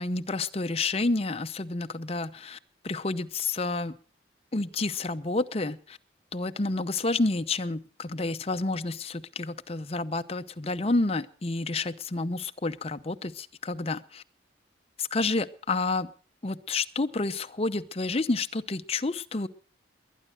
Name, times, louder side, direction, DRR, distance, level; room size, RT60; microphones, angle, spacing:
voice 1, 0.0-2.6 2.8-4.0 4.5-6.0 6.3-14.2 15.0-16.1 16.4-19.5, left 3 dB, 30° left, 9 dB, 0.7 m, -29 dB
21.0 x 10.0 x 6.3 m, 0.44 s
head